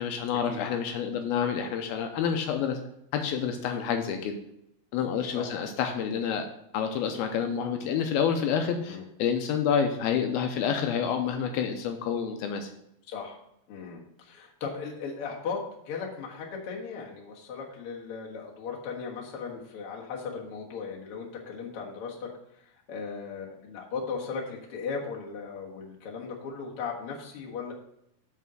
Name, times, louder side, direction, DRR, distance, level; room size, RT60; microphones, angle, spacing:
voice 1, 0.0-2.8 3.1-4.3 4.9-6.4 6.7-12.7, left 7 dB, 80° left, 5 dB, 2.4 m, -28 dB
voice 2, 13.1-13.4 13.7-27.7, left 5 dB, 55° left, -2 dB, 1.6 m, -37 dB
6.1 x 5.6 x 6.0 m, 0.78 s
omnidirectional pair, 4.6 m